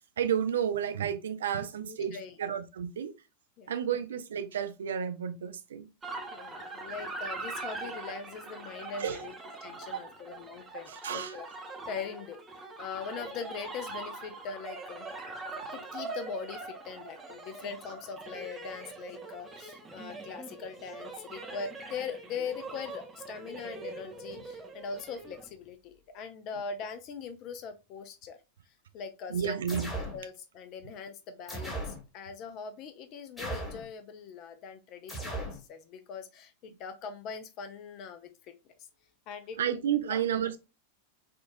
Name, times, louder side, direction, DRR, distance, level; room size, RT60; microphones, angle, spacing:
voice 1, 0.2-3.1 3.7-5.9 9.0-9.2 9.9-10.0 10.9-11.3 29.3-29.9 39.6-40.6, right 8 dB, 65° right, 0.3 m, -31 dB
voice 2, 1.8-2.4 3.6-3.7 6.3-9.4 9.6-11.4 11.9-12.4 12.8-15.1 15.7-28.4 28.9-29.6 29.9-38.3 39.3-39.6 40.0-40.2, left 6 dB, 40° left, 0.4 m, -41 dB
sound 1, 6.0-25.5, right 3 dB, 15° right, 0.7 m, -42 dB
sound 2, 29.7-30.2 31.5-32.0 33.4-33.9 35.1-35.6, right 1 dB, 10° left, 1.2 m, -37 dB
3.6 x 2.3 x 2.4 m
figure-of-eight pair, 90°, 0 cm